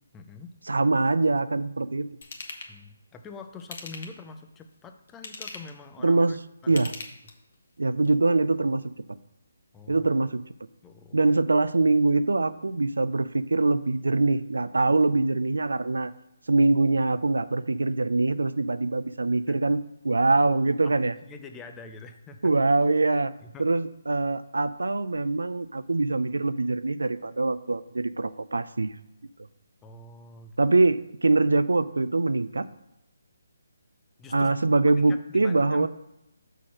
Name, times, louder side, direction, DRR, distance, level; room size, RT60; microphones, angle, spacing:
voice 1, 0.1-0.6 2.7-6.4 6.6-6.8 9.7-10.1 10.8-11.2 19.5-19.8 20.8-22.5 23.4-23.7 29.8-30.6 34.2-34.5 34.9-35.9, left 4 dB, 15° left, 7 dB, 0.5 m, -45 dB
voice 2, 0.7-2.1 6.0-6.4 6.7-6.9 7.8-8.9 9.9-10.4 11.1-16.1 16.5-19.8 20.0-21.1 22.4-23.3 23.6-28.9 30.6-32.7 34.3-35.9, right 3 dB, 80° right, 14 dB, 0.4 m, -23 dB
Ratchet pawl / Tools, 2.2-2.7 3.6-4.3 5.1-5.8 6.6-7.5 8.0-8.1, left 3 dB, 55° left, 1.2 m, -40 dB
6.4 x 4.1 x 6.2 m, 0.88 s
figure-of-eight pair, 150°, 0 cm